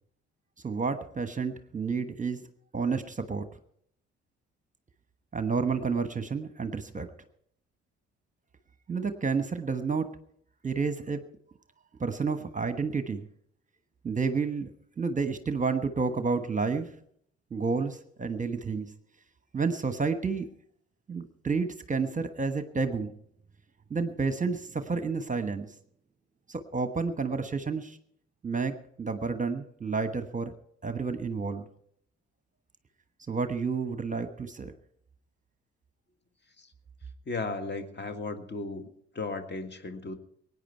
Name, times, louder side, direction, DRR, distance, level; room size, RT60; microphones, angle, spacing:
voice 1, 0.6-2.4 2.7-3.5 5.3-7.1 8.9-10.1 10.6-11.2 12.0-13.2 14.0-14.7 15.0-16.9 17.5-18.9 19.5-20.5 21.1-23.1 23.9-25.7 26.5-28.0 28.4-30.5 30.8-31.6 33.3-34.7, right 4 dB, 25° right, 9 dB, 1.3 m, -30 dB
voice 2, 37.3-38.9 39.1-40.2, left 3 dB, 30° left, 8 dB, 1.9 m, -35 dB
23.0 x 9.7 x 4.6 m, 0.67 s
figure-of-eight pair, 45°, 33 cm